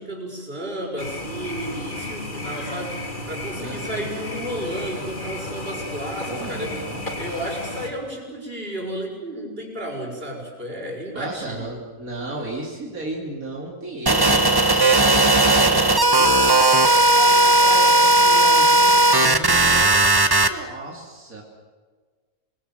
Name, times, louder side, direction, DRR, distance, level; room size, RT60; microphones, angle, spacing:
voice 1, 0.0-6.8 7.2-11.8, right 1 dB, 40° right, 0 dB, 6.1 m, -32 dB
sound 1, 1.0-7.9, left 1 dB, 35° left, 3.4 m, -33 dB
voice 2, 3.6-4.0 6.3-7.2 11.1-15.8 16.2-16.8 17.1-19.9 20.4-21.4, right 2 dB, 80° right, -1 dB, 3.3 m, -33 dB
sound 2, 14.1-20.5, right 2 dB, 20° right, 1.1 m, -16 dB
27.5 x 20.5 x 7.8 m, 1.5 s
omnidirectional pair, 1.5 m